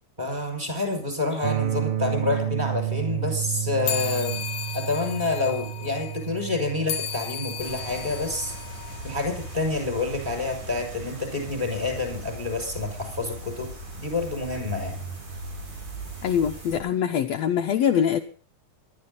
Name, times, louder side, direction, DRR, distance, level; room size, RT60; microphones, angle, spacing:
voice 1, 0.2-4.4 4.7-8.5 9.0-13.7 14.0-15.0, left 3 dB, 15° right, 4 dB, 6.1 m, -28 dB
sound 1, 1.4-11.3, right 12 dB, 65° right, 1.5 m, -32 dB
sound 2, 3.8-9.7, left 9 dB, 85° left, 2.4 m, -35 dB
sound 3, 7.6-16.8, right 2 dB, 85° right, 6.8 m, -39 dB
voice 2, 16.2-18.2, left 8 dB, 70° left, 4 dB, 1.9 m, -23 dB
20.5 x 12.0 x 4.0 m, 0.43 s
omnidirectional pair, 3.4 m